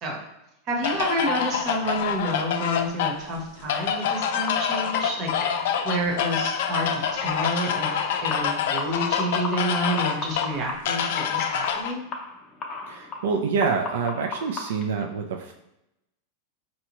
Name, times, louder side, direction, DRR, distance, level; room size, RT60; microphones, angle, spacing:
voice 1, 0.7-12.0, right 1 dB, 35° right, 0 dB, 1.0 m, -29 dB
sound 1, 0.8-11.9, left 8 dB, 65° left, 0.4 m, -27 dB
sound 2, 4.5-14.9, left 3 dB, 20° left, 0.6 m, -37 dB
voice 2, 12.9-15.5, right 5 dB, 85° right, 3 dB, 0.4 m, -26 dB
4.4 x 2.8 x 3.0 m, 0.88 s
supercardioid pair, 155°, 0 cm